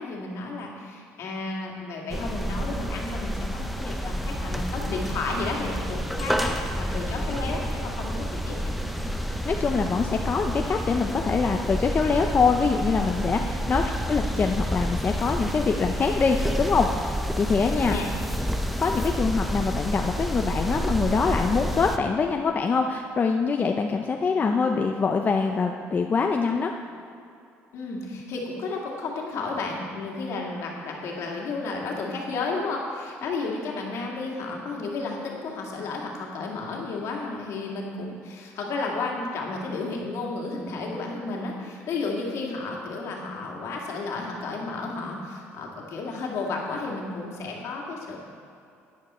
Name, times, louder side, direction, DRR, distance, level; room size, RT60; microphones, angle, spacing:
voice 1, 0.0-8.7 13.3-13.5 17.6-18.1 27.7-48.2, left 3 dB, 70° left, -1 dB, 2.1 m, -32 dB
sound 1, 2.1-22.0, equal, ahead, 0.7 m, -29 dB
voice 2, 9.4-18.0 18.8-26.7, left 5 dB, 35° left, 3 dB, 0.6 m, -24 dB
11.0 x 9.4 x 4.3 m, 2.6 s
cardioid pair, 95°, 5 cm